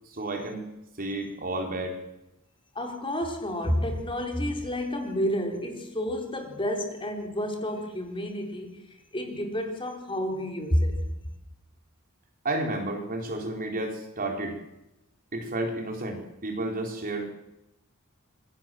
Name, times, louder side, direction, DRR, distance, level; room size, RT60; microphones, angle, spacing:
voice 1, 0.1-0.7 1.0-2.0 12.4-14.6 15.3-17.4, right 2 dB, 40° right, 4.2 m, -31 dB
voice 2, 2.7-8.8 9.1-11.0, equal, 25° left, 4.2 m, -30 dB
26.5 x 22.0 x 7.8 m
head